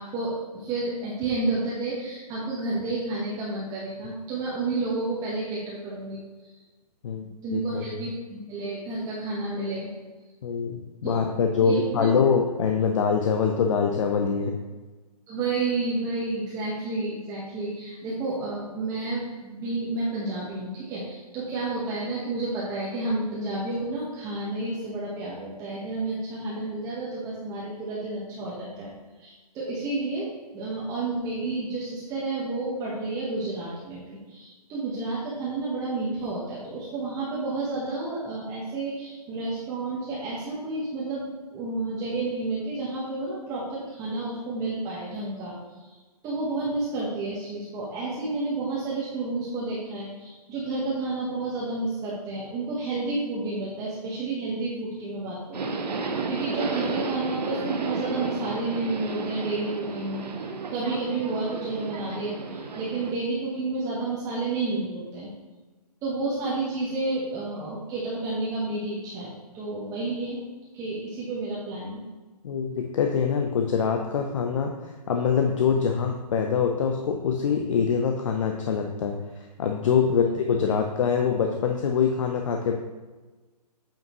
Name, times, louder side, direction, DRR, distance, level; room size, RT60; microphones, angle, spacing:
voice 1, 0.0-6.5 7.4-9.9 11.0-11.1 11.6-12.1 15.3-28.9 29.2-45.9 46.2-60.2 60.7-65.3 66.0-70.4 70.7-72.0 80.1-80.3, right 2 dB, 15° right, -6 dB, 1.2 m, -31 dB
voice 2, 7.5-7.8 10.4-14.5 72.4-82.7, left 6 dB, 50° left, 3 dB, 0.7 m, -24 dB
Subway metro underground, 55.5-63.1, right 4 dB, 80° right, 0.9 m, -32 dB
8.8 x 5.4 x 3.0 m, 1.3 s
hypercardioid pair, 145°, 21 cm